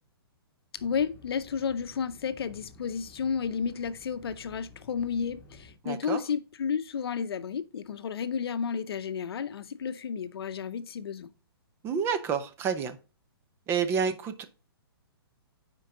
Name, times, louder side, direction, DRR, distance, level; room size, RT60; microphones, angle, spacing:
voice 1, 0.7-11.3, left 6 dB, 70° left, 0.7 m, -32 dB
sound 1, 0.7-5.7, left 4 dB, 15° left, 2.3 m, -53 dB
voice 2, 5.8-6.2 11.8-13.0 13.7-14.4, right 6 dB, 20° right, 0.6 m, -29 dB
9.0 x 4.6 x 3.9 m
hypercardioid pair, 145°, 13 cm